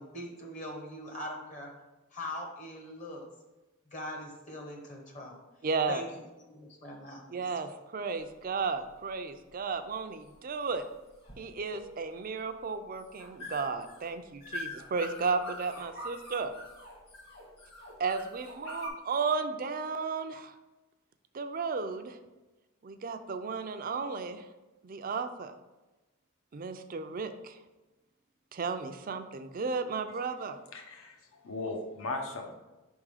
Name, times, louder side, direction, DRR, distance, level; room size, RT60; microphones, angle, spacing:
voice 1, 0.0-1.7 2.1-3.3 3.9-5.4 5.9-6.1 6.4-7.5, left 1 dB, 35° left, 1 dB, 0.9 m, -42 dB
voice 2, 5.6-6.0 7.3-10.8 11.4-16.5 18.0-20.5 21.3-22.2 22.8-24.4 24.8-25.5 26.5-27.5 28.5-30.6, right 4 dB, 40° right, 9 dB, 0.4 m, -34 dB
sound 1, 8.2-18.9, left 1 dB, 50° left, 1.5 m, -45 dB
voice 3, 30.7-32.5, left 2 dB, 70° left, 3 dB, 0.9 m, -38 dB
5.9 x 3.6 x 4.8 m, 1.1 s
head